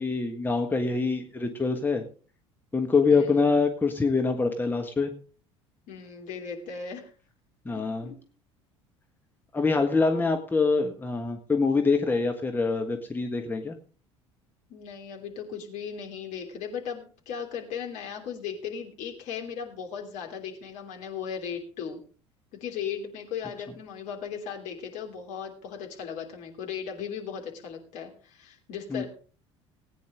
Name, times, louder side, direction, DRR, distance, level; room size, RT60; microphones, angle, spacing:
voice 1, 0.0-2.0 2.7-5.1 7.6-8.1 9.5-13.7 28.9-29.0, left 4 dB, 10° left, 4 dB, 1.5 m, -25 dB
voice 2, 3.1-3.4 5.9-7.1 7.7-8.2 10.1-10.3 14.7-22.0 22.6-29.1, left 7 dB, 50° left, 2 dB, 3.3 m, -37 dB
19.0 x 9.4 x 3.7 m, 0.40 s
figure-of-eight pair, 65°, 16 cm